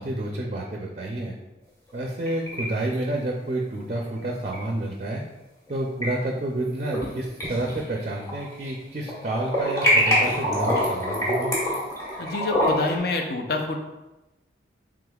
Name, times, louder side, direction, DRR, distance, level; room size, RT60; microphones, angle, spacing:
voice 1, 0.0-1.4 1.9-5.2 5.7-11.6, right 1 dB, 40° right, 0 dB, 0.4 m, -29 dB
sound 1, 1.9-2.6 2.9-3.0 4.5-4.6 5.7-6.1 6.6-7.1 7.4-8.7 9.0-13.0, equal, 20° left, 1.5 m, -25 dB
voice 2, 12.2-13.8, left 3 dB, 55° left, 3 dB, 0.5 m, -27 dB
5.0 x 3.6 x 2.3 m, 1.0 s
head